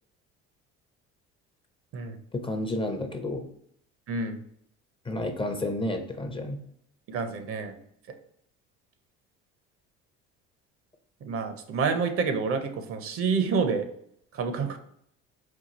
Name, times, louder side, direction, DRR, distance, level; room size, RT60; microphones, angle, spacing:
voice 1, 2.3-3.5 5.1-6.6, left 1 dB, 15° left, 5 dB, 0.6 m, -31 dB
voice 2, 4.1-4.4 7.1-7.7 11.2-13.9 14.3-14.8, right 5 dB, 50° right, 7 dB, 0.7 m, -28 dB
4.5 x 2.3 x 4.0 m, 0.70 s
supercardioid pair, 90°, 30 cm